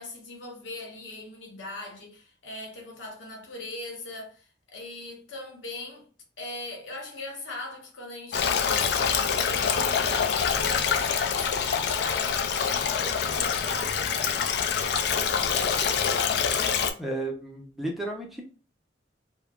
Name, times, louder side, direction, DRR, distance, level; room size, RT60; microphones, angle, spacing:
voice 1, 0.0-6.1 6.4-16.1, left 2 dB, 85° left, 0.9 m, -40 dB
Stream, 8.3-16.9, left 7 dB, 60° left, 0.4 m, -25 dB
voice 2, 17.0-18.4, right 2 dB, ahead, 0.5 m, -33 dB
3.0 x 2.0 x 2.3 m
head